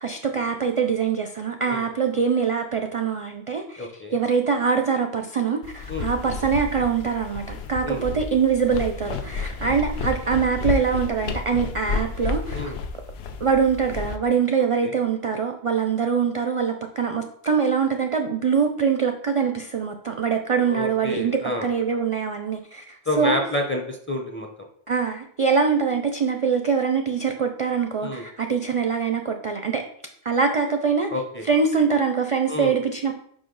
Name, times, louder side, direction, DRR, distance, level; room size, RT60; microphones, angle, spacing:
voice 1, 0.0-12.7 13.4-23.4 24.9-29.8 30.2-31.1 31.5-33.1, right 6 dB, 50° right, 5 dB, 0.4 m, -23 dB
voice 2, 3.8-4.1 5.9-6.1 7.8-8.0 12.5-12.8 14.8-14.9 20.7-21.7 23.1-24.5 28.0-28.2 31.1-31.4 32.5-32.7, left 1 dB, 15° left, 3 dB, 0.5 m, -28 dB
sound 1, 5.6-14.2, left 4 dB, 75° left, 0.9 m, -31 dB
5.1 x 4.9 x 3.9 m, 0.67 s
omnidirectional pair, 1.1 m